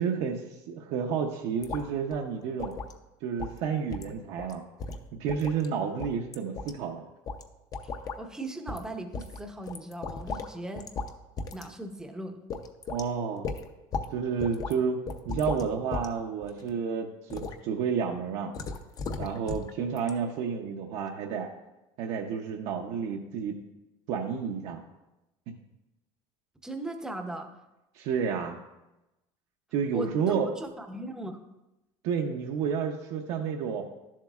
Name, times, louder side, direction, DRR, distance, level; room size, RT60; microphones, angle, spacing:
voice 1, 0.0-2.7 3.2-4.6 5.2-7.0 12.9-13.5 14.1-15.0 15.2-18.5 19.2-21.5 22.0-23.6 24.1-24.8 27.9-28.6 29.7-30.5 32.0-33.8, right 6 dB, 65° right, 1 dB, 0.7 m, -30 dB
sound 1, 1.6-1.9 2.1-2.2 2.6-3.0 3.4-3.6 3.9-4.1 4.4-4.5 4.8-5.7 6.0-6.7 7.3-7.4 7.7-8.2 8.7-8.9 9.1-10.5 10.8-11.1 11.4-11.7 12.0-12.1 12.5-13.0 13.4-14.1 14.4-14.7 15.1-16.1 16.4-16.7 17.3-17.6 18.5-19.7 20.0-20.1, left 4 dB, 35° left, 0.6 m, -36 dB
voice 2, 8.2-10.9 11.5-12.4 26.6-27.5 29.9-31.4, right 1 dB, 5° right, 5 dB, 0.7 m, -38 dB
11.5 x 7.3 x 2.4 m, 0.97 s
cardioid pair, 140°, 11 cm